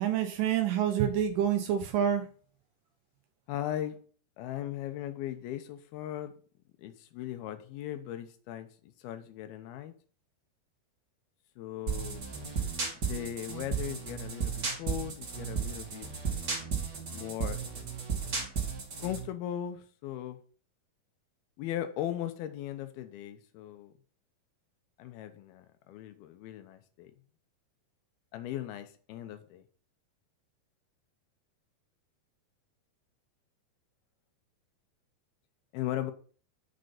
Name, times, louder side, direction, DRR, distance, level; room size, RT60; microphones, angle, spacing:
voice 1, 0.0-2.3, right 9 dB, 75° right, 2.1 m, -27 dB
voice 2, 3.5-4.0 4.4-6.3 6.8-8.7 9.0-9.9 11.6-12.3 13.1-16.1 17.1-17.6 19.0-20.4 21.6-23.9 25.0-27.1 28.3-29.6 35.7-36.1, left 12 dB, 80° left, 2.7 m, -38 dB
sound 1, 11.9-19.3, right 6 dB, 40° right, 1.6 m, -34 dB
6.7 x 5.3 x 5.8 m
omnidirectional pair, 4.5 m